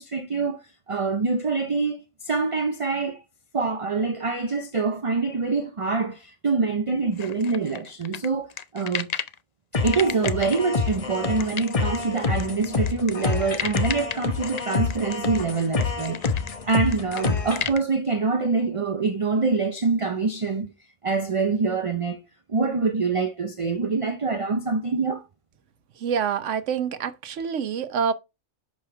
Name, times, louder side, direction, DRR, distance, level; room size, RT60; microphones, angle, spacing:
voice 1, 0.0-3.2 3.5-9.1 9.8-16.2 16.6-20.7 21.0-22.2 22.5-25.2, right 4 dB, 35° right, 0.6 m, -25 dB
sound 1, 7.2-9.4 9.9-17.8, left 8 dB, 50° left, 0.5 m, -33 dB
sound 2, 9.7-17.7, left 4 dB, 35° left, 0.9 m, -27 dB
voice 2, 26.0-28.1, right 7 dB, 90° right, 1.1 m, -26 dB
6.3 x 5.4 x 3.2 m
omnidirectional pair, 1.2 m